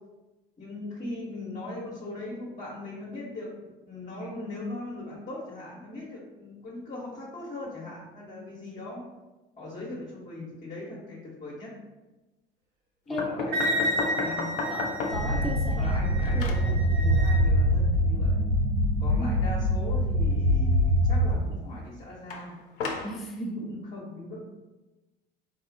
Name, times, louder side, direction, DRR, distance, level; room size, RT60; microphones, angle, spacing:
voice 1, 0.6-3.5 3.9-9.0 9.6-11.7 13.1-14.5 15.2-18.4 19.0-22.6 23.6-24.5, left 2 dB, 25° left, -6 dB, 1.0 m, -39 dB
voice 2, 13.1-13.8 14.7-16.1 16.3-16.6 19.2-19.5 23.0-23.8, left 1 dB, ahead, 0 dB, 0.3 m, -35 dB
sound 1, 13.2-15.4 15.8-16.7 22.3-23.2, left 4 dB, 65° left, 0.5 m, -33 dB
Wind instrument woodwind instrument, 13.5-17.4, equal, 35° right, 0.9 m, -32 dB
sound 2, 15.1-21.3, equal, 85° right, 0.7 m, -24 dB
4.2 x 2.3 x 2.6 m, 1.1 s
figure-of-eight pair, 60°, 29 cm